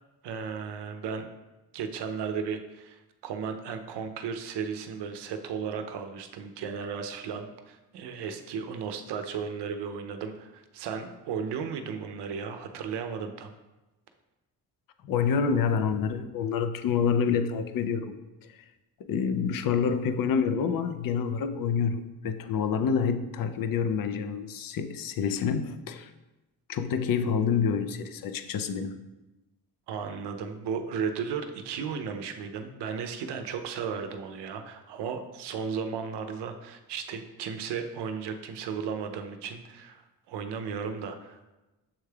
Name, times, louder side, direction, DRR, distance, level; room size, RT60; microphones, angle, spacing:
voice 1, 0.2-1.3 1.7-13.5 29.9-40.0 40.3-41.5, right 6 dB, 75° right, 7 dB, 0.6 m, -35 dB
voice 2, 15.0-18.1 19.1-26.1 26.7-28.9, left 6 dB, 55° left, 9 dB, 0.5 m, -27 dB
7.2 x 3.2 x 2.3 m, 1.1 s
cardioid pair, 75°, 41 cm